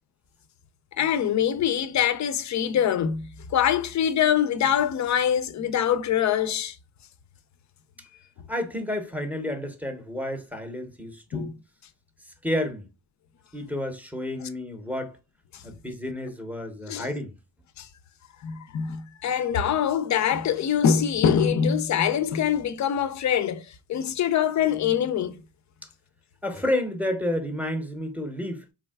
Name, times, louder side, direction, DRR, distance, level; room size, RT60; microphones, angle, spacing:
voice 1, 1.0-6.8 11.3-11.5 15.5-15.6 16.9-17.1 17.8-17.9 18.4-25.4, left 8 dB, 40° left, 0.4 m, -24 dB
voice 2, 8.5-11.5 12.4-12.9 13.5-15.1 15.6-17.3 25.8-25.9 26.4-28.6, left 1 dB, 5° right, 0.7 m, -30 dB
3.4 x 2.3 x 2.2 m
supercardioid pair, 60°, 48 cm